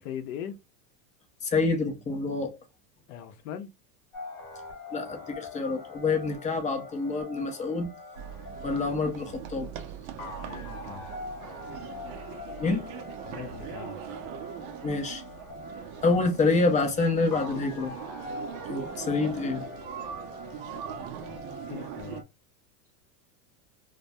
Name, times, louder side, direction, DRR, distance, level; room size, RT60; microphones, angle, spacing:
voice 1, 0.0-0.6 3.1-3.7 10.4-11.1 13.2-14.0 20.9-22.2, left 9 dB, 65° left, 0.7 m, -40 dB
voice 2, 1.4-2.5 4.9-7.9 8.6-9.7 12.6-12.8 14.8-15.2 16.0-17.9 18.7-19.6, left 3 dB, 15° left, 0.5 m, -27 dB
sound 1, 4.1-22.2, left 3 dB, 35° left, 1.0 m, -43 dB
sound 2, 8.2-22.2, right 10 dB, 50° right, 0.5 m, -41 dB
2.2 x 2.2 x 2.6 m
supercardioid pair, 115°, 46 cm